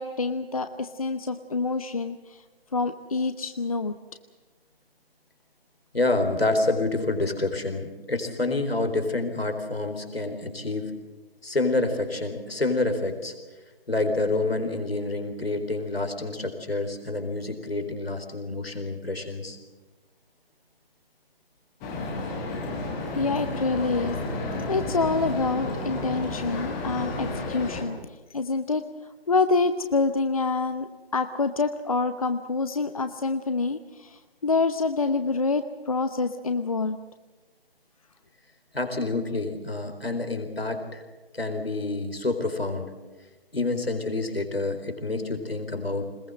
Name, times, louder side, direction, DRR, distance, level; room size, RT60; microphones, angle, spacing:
voice 1, 0.0-2.4 2.7-3.9 23.2-24.2 24.7-28.0 28.3-28.8 29.3-37.0, left 3 dB, 35° left, 10 dB, 0.8 m, -26 dB
voice 2, 5.9-10.9 11.4-13.3 13.9-19.6 38.7-41.0 41.3-42.9 43.5-46.1, left 2 dB, 75° left, 6 dB, 4.2 m, -28 dB
sound 1, 21.8-27.8, left 2 dB, 10° left, 1.3 m, -31 dB
22.0 x 21.0 x 7.8 m, 1.2 s
figure-of-eight pair, 150°, 30 cm